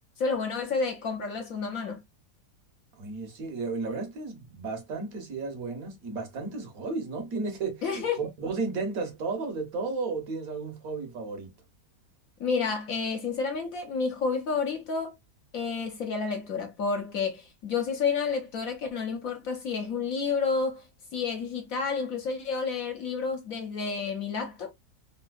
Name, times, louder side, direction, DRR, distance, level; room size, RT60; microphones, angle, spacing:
voice 1, 0.2-2.0 7.8-8.2 12.4-15.1 15.5-20.9 21.1-24.7, left 5 dB, 65° left, 0.9 m, -30 dB
voice 2, 3.0-11.5, right 3 dB, 60° right, 1.1 m, -33 dB
3.3 x 2.6 x 2.2 m
omnidirectional pair, 1.8 m